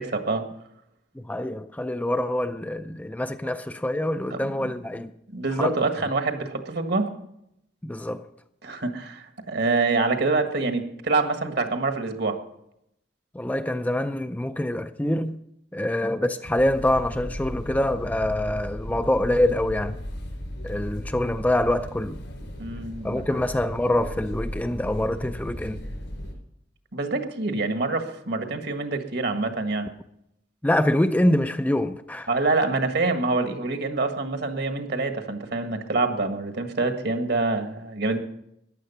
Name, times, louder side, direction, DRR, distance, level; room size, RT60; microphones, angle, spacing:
voice 1, 0.1-0.4 4.3-4.7 5.3-7.1 8.6-12.4 22.6-23.2 26.9-29.9 32.3-38.2, right 3 dB, 60° right, 1.6 m, -26 dB
voice 2, 1.2-5.1 5.6-5.8 7.8-8.2 13.3-15.4 15.7-20.0 20.6-22.2 23.0-25.8 30.6-32.3, left 1 dB, 10° left, 0.4 m, -25 dB
sound 1, 16.4-26.3, equal, 80° left, 4.3 m, -36 dB
14.5 x 10.5 x 5.6 m
head